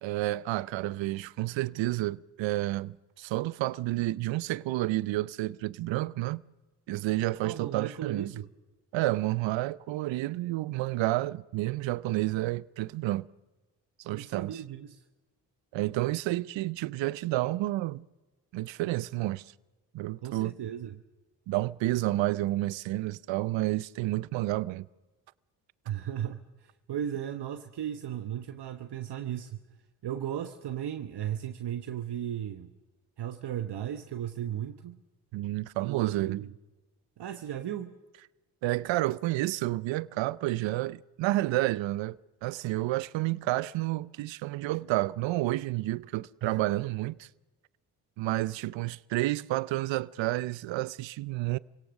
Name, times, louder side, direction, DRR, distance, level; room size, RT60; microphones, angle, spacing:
voice 1, 0.0-6.4 6.9-8.3 8.9-13.3 14.1-14.6 15.7-18.0 18.5-19.4 19.9-20.5 21.5-24.9 35.3-36.4 38.6-47.3 48.2-51.6, right 17 dB, 80° right, 0.7 m, -30 dB
voice 2, 7.4-8.5 14.1-15.0 20.2-21.0 25.8-29.6 30.0-32.7 33.2-35.0 35.8-36.5 37.2-37.9 46.4-46.6, right 10 dB, 60° right, 1.2 m, -36 dB
27.0 x 17.5 x 6.5 m
supercardioid pair, 55°, 44 cm